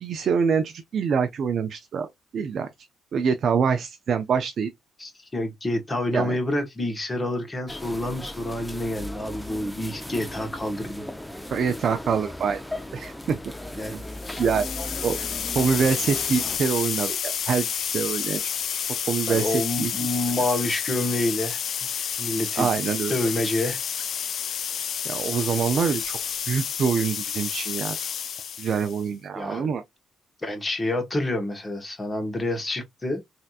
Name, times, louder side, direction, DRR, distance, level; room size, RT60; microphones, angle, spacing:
voice 1, 0.0-2.7 3.1-4.7 6.1-6.3 11.5-12.6 12.9-13.4 13.9-14.0 14.4-14.7 15.0-15.2 15.5-17.7 17.9-18.4 19.1-19.9 22.6-23.2 25.0-26.2 26.5-28.0 28.6-29.8, right 6 dB, 60° right, 0.4 m, -25 dB
voice 2, 5.0-11.1 13.8-14.4 19.3-21.6 22.0-22.7 23.1-23.8 29.3-29.7 30.4-33.2, left 1 dB, 25° left, 1.2 m, -28 dB
sound 1, 7.7-16.6, left 1 dB, 5° left, 0.5 m, -37 dB
sound 2, 14.1-29.0, left 8 dB, 60° left, 0.4 m, -30 dB
3.3 x 2.8 x 2.4 m
cardioid pair, 90°, 0 cm